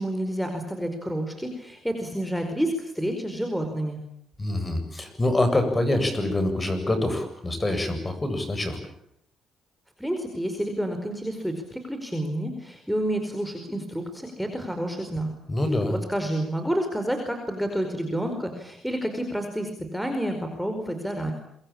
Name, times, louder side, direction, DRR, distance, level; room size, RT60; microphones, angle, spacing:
voice 1, 0.0-4.0 10.0-15.3 15.9-21.3, right 1 dB, ahead, 4 dB, 4.9 m, -29 dB
voice 2, 4.4-8.8 15.5-15.9, left 1 dB, 20° left, 8 dB, 7.7 m, -25 dB
27.0 x 23.5 x 8.9 m, 0.72 s
cardioid pair, 90°, 0 cm